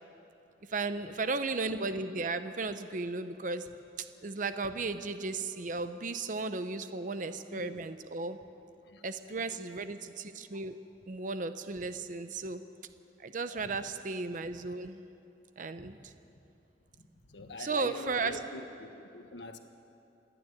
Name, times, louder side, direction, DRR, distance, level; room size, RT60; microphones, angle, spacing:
voice 1, 0.7-3.7 4.0-8.4 9.0-10.8 11.1-12.6 13.2-15.0 15.6-16.1 17.6-18.4, right 3 dB, 45° right, 10 dB, 0.7 m, -35 dB
voice 2, 13.5-13.9 15.8-15.9 17.0-19.6, left 2 dB, 70° left, 6 dB, 1.4 m, -46 dB
26.5 x 10.0 x 9.7 m, 2.7 s
head